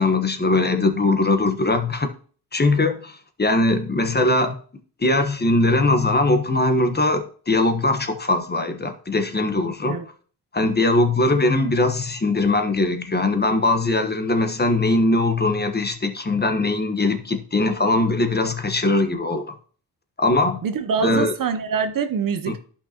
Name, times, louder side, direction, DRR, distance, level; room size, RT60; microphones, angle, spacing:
voice 1, 0.0-2.1 2.5-4.5 5.0-10.0 10.5-19.5 20.2-20.6 21.0-21.3 22.5-22.6, left 2 dB, 20° left, 1.2 m, -21 dB
voice 2, 20.6-22.6, right 6 dB, 50° right, 0.8 m, -24 dB
11.5 x 5.7 x 2.9 m
cardioid pair, 85°, 44 cm